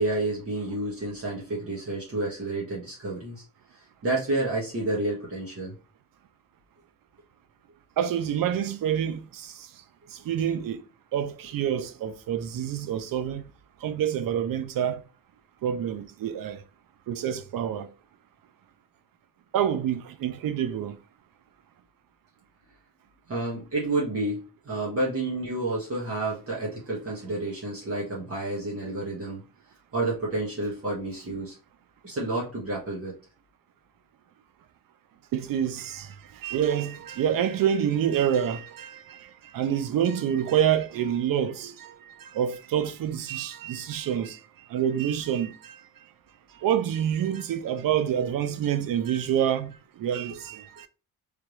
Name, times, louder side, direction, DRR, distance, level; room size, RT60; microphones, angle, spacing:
voice 1, 0.0-3.4 4.0-5.7 23.3-29.4 29.9-31.6 32.0-33.2, right 2 dB, 40° right, 1.4 m, -30 dB
voice 2, 8.0-9.7 10.1-10.8 11.1-13.4 13.8-15.0 15.6-16.6 17.1-17.9 19.5-21.0 35.3-44.4 44.7-45.8 46.6-50.9, right 9 dB, 70° right, 0.5 m, -27 dB
3.4 x 3.4 x 3.0 m
wide cardioid pair, 160°, 35 cm